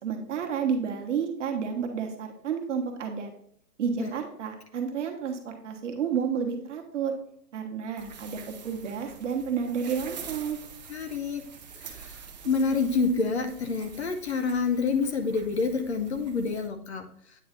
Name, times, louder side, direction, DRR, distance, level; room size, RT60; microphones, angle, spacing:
voice 1, 0.0-3.3 3.8-7.1 7.5-10.6, right 7 dB, 50° right, 3 dB, 1.2 m, -31 dB
sound 1, 8.0-16.7, right 6 dB, 30° right, 0.6 m, -46 dB
voice 2, 10.9-11.4 12.0-12.1 12.5-17.1, left 4 dB, 45° left, 7 dB, 0.6 m, -27 dB
8.5 x 3.1 x 3.9 m, 0.68 s
hypercardioid pair, 150°, 47 cm